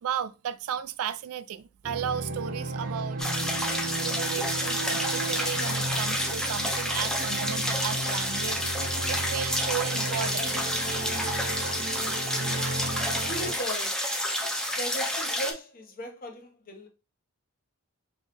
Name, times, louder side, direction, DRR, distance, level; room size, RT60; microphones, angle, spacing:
voice 1, 0.0-3.6 4.0-10.6 11.3-11.7, right 9 dB, 70° right, 0.3 m, -35 dB
sound 1, 1.8-13.5, right 2 dB, 40° right, 0.7 m, -34 dB
sound 2, 3.2-15.5, equal, 5° left, 0.6 m, -29 dB
voice 2, 13.1-14.1 14.7-16.9, equal, 40° left, 0.9 m, -37 dB
4.5 x 3.1 x 3.0 m
head